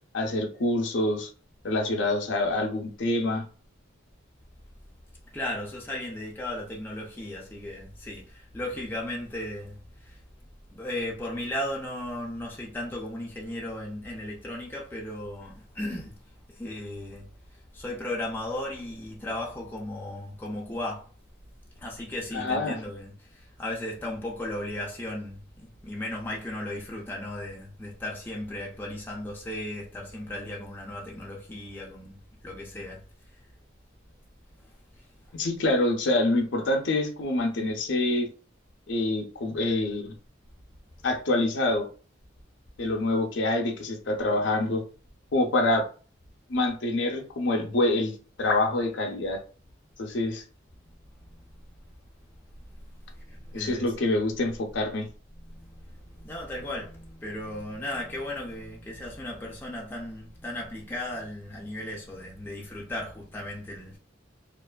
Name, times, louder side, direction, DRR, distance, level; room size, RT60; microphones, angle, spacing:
voice 1, 0.1-1.3 1.6-3.4 22.3-22.8 35.3-38.3 38.9-40.1 41.0-41.9 42.8-44.8 45.3-45.8 46.5-48.1 48.4-49.4 50.0-50.4 53.5-55.1, left 2 dB, 60° left, 0.5 m, -26 dB
voice 2, 5.3-10.2 10.7-16.2 16.5-21.1 21.8-33.0 33.3-33.4 34.6-35.1 51.2-51.6 52.7-52.8 53.0-53.9 55.4-64.0, left 1 dB, 10° left, 0.4 m, -36 dB
2.5 x 2.4 x 2.2 m
head